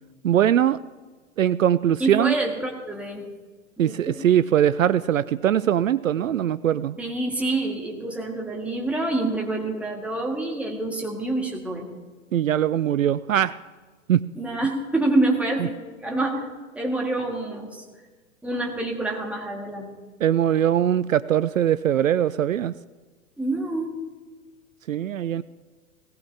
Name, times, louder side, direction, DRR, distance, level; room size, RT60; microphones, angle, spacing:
voice 1, 0.2-0.8 1.4-2.3 3.8-7.0 12.3-13.5 14.1-14.2 20.2-22.7 24.9-25.4, right 10 dB, 70° right, 16 dB, 0.5 m, -21 dB
voice 2, 2.0-3.2 3.8-4.2 7.0-11.9 14.4-15.7 16.0-16.5 16.8-17.8 18.4-20.0 23.4-23.9, right 2 dB, 5° right, 0 dB, 1.9 m, -27 dB
18.0 x 18.0 x 2.9 m, 1.3 s
figure-of-eight pair, 105°, 42 cm